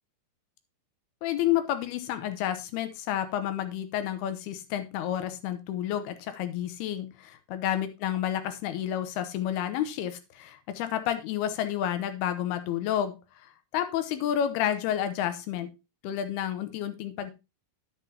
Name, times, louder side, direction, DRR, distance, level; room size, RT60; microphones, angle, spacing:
voice 1, 1.2-15.7 16.0-17.3, left 11 dB, 85° left, 10 dB, 3.0 m, -30 dB
9.7 x 9.4 x 2.8 m, 0.25 s
omnidirectional pair, 4.4 m